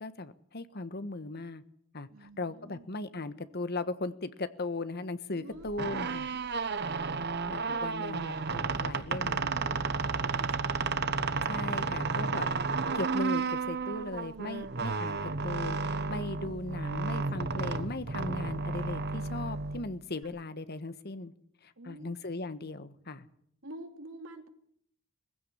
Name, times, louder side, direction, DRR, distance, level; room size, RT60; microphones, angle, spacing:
voice 1, 0.0-1.6 1.9-6.3 7.5-9.4 11.4-12.5 12.9-21.3 21.6-23.3, left 2 dB, 50° left, 12 dB, 1.4 m, -38 dB
voice 2, 2.1-2.9 5.4-6.6 7.7-8.1 8.7-11.1 20.3-20.4 21.8-22.1 23.6-24.5, right 1 dB, 80° right, 6 dB, 2.8 m, -49 dB
sound 1, 5.6-20.2, right 4 dB, 55° right, 1.1 m, -32 dB
20.0 x 16.0 x 9.9 m, 0.69 s
head